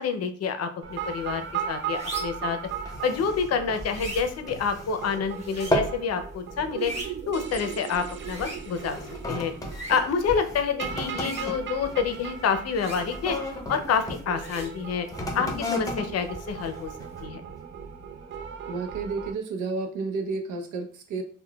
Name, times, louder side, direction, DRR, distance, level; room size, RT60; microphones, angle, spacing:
voice 1, 0.0-2.6 3.0-6.9 7.3-9.0 9.3-9.5 9.9-13.4 13.7-15.1 15.3-16.9 17.2-17.4, left 6 dB, 55° left, 8 dB, 0.5 m, -28 dB
sound 1, 0.8-19.3, right 8 dB, 40° right, 0.4 m, -38 dB
sound 2, 0.9-17.2, right 1 dB, 20° right, 1.3 m, -43 dB
sound 3, 2.7-5.3 5.5-6.1 6.5-6.8 7.5-7.7 8.4-14.2 15.0-17.4 18.0-18.1, left 1 dB, 10° left, 0.6 m, -34 dB
voice 2, 18.7-21.2, right 4 dB, 80° right, 6 dB, 0.6 m, -31 dB
3.7 x 2.2 x 2.2 m, 0.42 s
cardioid pair, 90°, 30 cm